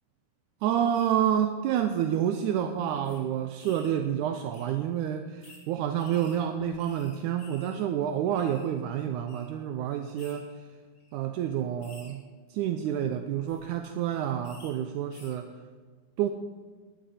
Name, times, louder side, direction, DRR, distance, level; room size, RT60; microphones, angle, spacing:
voice 1, 0.6-10.5 11.1-12.2 12.5-15.5 16.2-16.3, right 10 dB, 80° right, 7 dB, 1.9 m, -28 dB
sound 1, 0.9-1.1 1.9-2.1 2.4-2.5 3.0-3.2 3.6-4.0 4.5-4.7 5.4-5.6 6.0-7.8 8.1-8.7 9.3-9.5 10.2-10.4 10.9-11.1 11.8-12.1 13.3-13.6 14.4-14.7 15.1-15.4, left 2 dB, 30° left, 2.9 m, -53 dB
20.5 x 11.5 x 4.3 m, 1.4 s
omnidirectional pair, 4.0 m